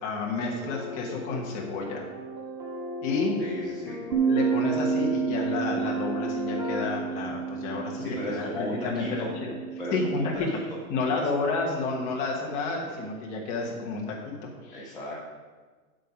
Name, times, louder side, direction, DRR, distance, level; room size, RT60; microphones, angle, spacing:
voice 1, 0.0-2.1 3.0-3.4 3.8-9.5 9.9-10.2 10.9-14.2 14.4-14.8, left 3 dB, 15° left, -1 dB, 1.2 m, -30 dB
sound 1, 0.6-6.9, left 3 dB, 30° right, 2.0 m, -36 dB
voice 2, 3.4-4.0 8.0-9.3 9.8-10.6 11.0-11.2 14.7-15.2, left 1 dB, ahead, -13 dB, 0.5 m, -35 dB
Bass guitar, 4.1-10.4, right 7 dB, 80° right, 1.2 m, -30 dB
8.8 x 7.8 x 5.1 m, 1.4 s
hypercardioid pair, 170°, 45 cm